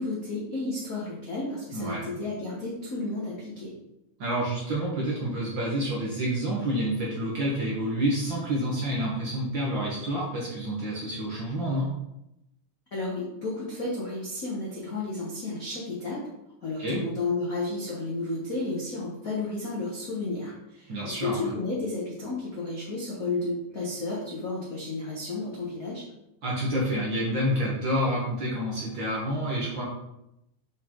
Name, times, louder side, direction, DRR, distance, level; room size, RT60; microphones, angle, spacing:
voice 1, 0.0-3.7 12.9-16.2 16.6-26.0, left 2 dB, 65° left, -5 dB, 0.8 m, -32 dB
voice 2, 1.7-2.1 4.2-11.9 16.8-17.0 20.9-21.5 26.4-29.8, equal, 55° right, -5 dB, 1.3 m, -28 dB
5.9 x 4.5 x 3.7 m, 0.86 s
omnidirectional pair, 3.4 m